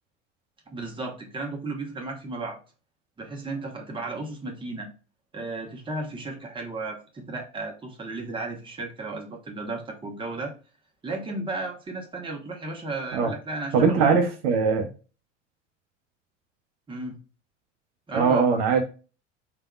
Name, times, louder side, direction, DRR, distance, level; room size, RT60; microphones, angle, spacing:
voice 1, 0.7-2.6 3.2-4.9 5.3-10.5 11.0-14.1 16.9-17.2 18.1-18.5, right 2 dB, 15° right, 0 dB, 1.2 m, -34 dB
voice 2, 13.7-14.9 18.1-18.8, right 5 dB, 55° right, 4 dB, 0.9 m, -21 dB
5.0 x 3.4 x 2.3 m, 0.34 s
figure-of-eight pair, 70°, 38 cm